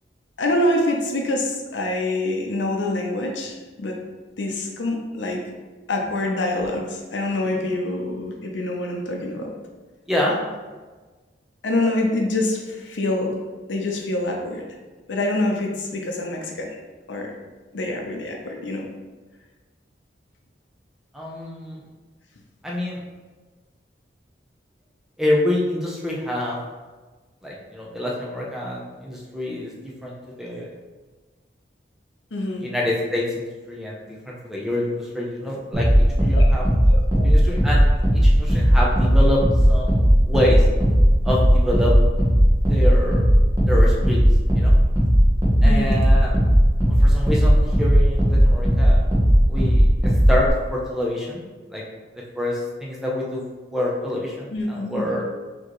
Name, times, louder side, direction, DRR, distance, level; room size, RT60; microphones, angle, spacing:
voice 1, 0.4-4.0 4.4-5.4 5.9-9.5 11.6-13.4 13.7-14.6 15.1-16.8 17.1-17.3 17.7-18.9 32.3-32.7 36.4-36.5 36.9-37.2 45.6-46.0 54.5-55.1, left 1 dB, 85° left, 1 dB, 0.7 m, -25 dB
voice 2, 10.1-10.4 21.1-21.8 22.6-23.0 25.2-26.6 27.4-30.7 32.6-36.6 37.2-37.9 38.2-39.4 39.7-40.0 40.3-40.7 41.2-42.0 42.7-43.3 43.7-44.2 44.5-44.7 45.6-46.4 46.8-49.0 49.5-51.4 51.7-51.8 52.4-55.2, left 1 dB, ahead, -4 dB, 0.6 m, -26 dB
sound 1, 35.7-50.5, equal, 20° right, 1.0 m, -17 dB
4.5 x 3.0 x 3.0 m, 1.3 s
head